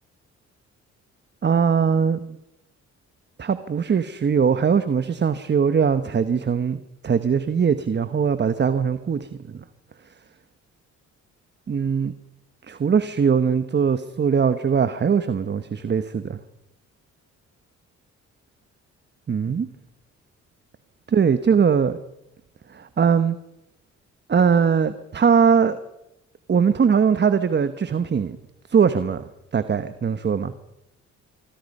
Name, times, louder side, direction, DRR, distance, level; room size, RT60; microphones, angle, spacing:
voice 1, 1.4-2.4 3.4-9.6 11.7-12.1 12.7-16.4 19.3-19.7 21.1-22.0 22.7-23.3 24.3-25.8 26.5-28.4 28.7-29.2 29.5-30.5, right 6 dB, 35° right, 12 dB, 1.1 m, -21 dB
25.5 x 23.5 x 5.5 m, 0.86 s
cardioid pair, 90°, 30 cm